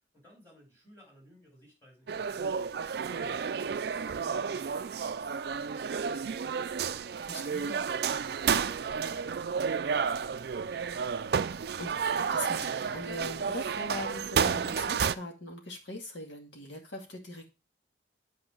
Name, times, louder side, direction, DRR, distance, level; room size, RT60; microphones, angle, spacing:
voice 1, 0.1-6.7 7.2-10.8, equal, 10° left, -3 dB, 3.8 m, -58 dB
sound 1, 2.1-15.1, right 6 dB, 55° right, 0.4 m, -31 dB
voice 2, 7.2-7.8 11.8-17.5, left 1 dB, 75° left, 1 dB, 2.1 m, -41 dB
8.1 x 4.8 x 4.4 m, 0.28 s
head